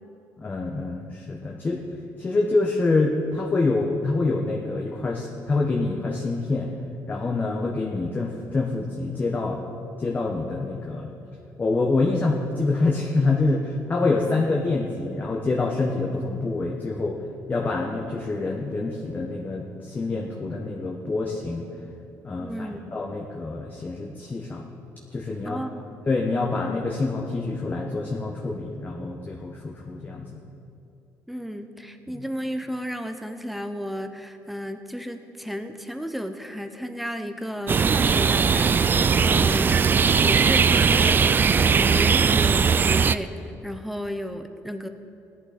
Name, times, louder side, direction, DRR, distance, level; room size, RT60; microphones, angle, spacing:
voice 1, 0.4-1.8 2.2-6.7 7.1-9.6 10.0-11.1 11.6-17.2 17.5-21.7 22.2-24.7 25.1-25.6 26.1-30.4 32.1-32.2 39.1-39.5, left 3 dB, 25° left, -1 dB, 1.2 m, -26 dB
voice 2, 22.4-22.8 25.4-25.8 31.3-39.0 39.3-39.8 40.2-44.9, equal, ahead, 7 dB, 0.9 m, -33 dB
sound 1, 37.7-43.2, right 6 dB, 30° right, 0.3 m, -19 dB
17.0 x 11.0 x 4.3 m, 2.9 s
cardioid pair, 110°, 7 cm